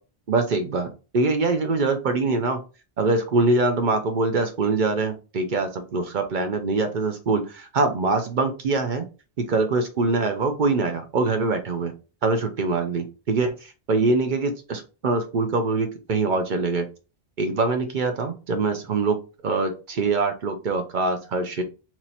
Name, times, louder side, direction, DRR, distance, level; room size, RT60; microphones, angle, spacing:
voice 1, 0.3-2.6 3.0-9.0 9.4-11.9 12.2-16.9 17.4-19.2 19.4-21.6, right 3 dB, 55° right, 6 dB, 0.7 m, -24 dB
3.0 x 2.8 x 4.0 m, 0.32 s
omnidirectional pair, 1.0 m